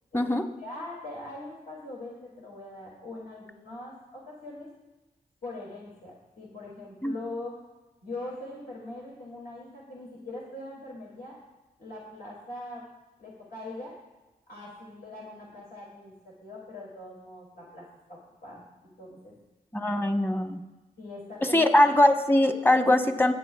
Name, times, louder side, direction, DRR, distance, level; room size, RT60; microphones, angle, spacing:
voice 1, 0.6-4.7 5.4-7.6 8.0-11.4 11.8-12.8 13.2-13.9 14.5-18.7 19.0-19.3 21.0-21.6, left 2 dB, 65° left, -5 dB, 2.5 m, -42 dB
voice 2, 19.7-20.6 21.5-23.3, left 1 dB, 15° left, 5 dB, 1.1 m, -21 dB
17.0 x 8.6 x 2.3 m, 1.1 s
cardioid pair, 55°, 16 cm